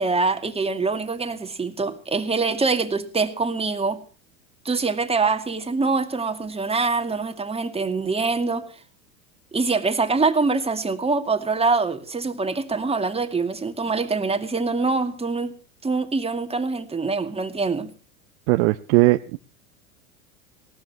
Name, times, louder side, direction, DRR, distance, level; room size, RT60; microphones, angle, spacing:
voice 1, 0.0-4.0 4.6-8.7 9.5-15.5 15.8-17.9, right 4 dB, 15° right, 2.4 m, -24 dB
voice 2, 18.5-19.4, right 21 dB, 65° right, 1.0 m, -18 dB
19.5 x 17.5 x 3.0 m
hypercardioid pair, 100°, 39 cm